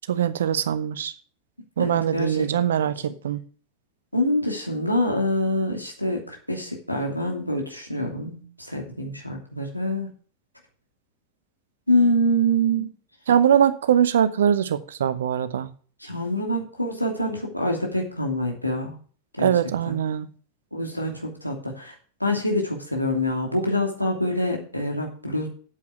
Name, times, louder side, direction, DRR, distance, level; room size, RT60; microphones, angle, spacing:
voice 1, 0.1-1.1 1.8-3.4 13.3-15.7 19.4-20.3, right 9 dB, 60° right, 0.9 m, -22 dB
voice 2, 1.8-2.5 4.1-10.1 11.9-12.9 16.0-18.9 19.4-19.5 19.8-20.0 20.7-21.9 22.2-25.5, equal, 90° left, 2.8 m, -25 dB
8.5 x 8.4 x 5.6 m
figure-of-eight pair, 90°, 0 cm